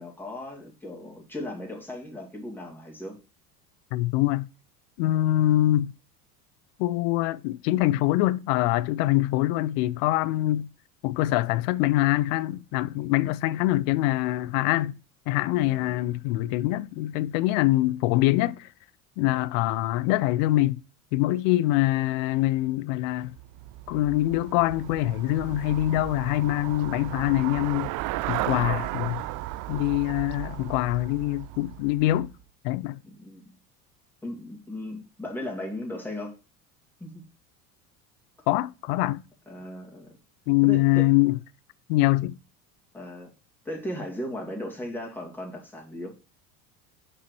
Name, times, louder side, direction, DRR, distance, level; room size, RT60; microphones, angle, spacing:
voice 1, 0.0-3.2 15.7-16.0 33.0-33.5 34.2-36.3 37.0-37.3 39.5-40.1 40.6-41.1 42.9-43.3 43.6-46.2, left 1 dB, 5° left, 2.5 m, -37 dB
voice 2, 3.9-4.5 5.0-5.9 6.8-10.7 11.0-15.0 15.3-18.7 19.2-20.8 21.1-23.3 23.9-27.9 28.3-29.2 29.7-32.3 32.6-33.0 38.5-39.2 40.5-41.4 41.9-42.3, left 16 dB, 55° left, 0.6 m, -24 dB
Traffic noise roadway noise / Bicycle, 23.2-32.4, right 16 dB, 45° right, 0.5 m, -35 dB
7.3 x 6.1 x 3.1 m
hypercardioid pair, 75°, 46 cm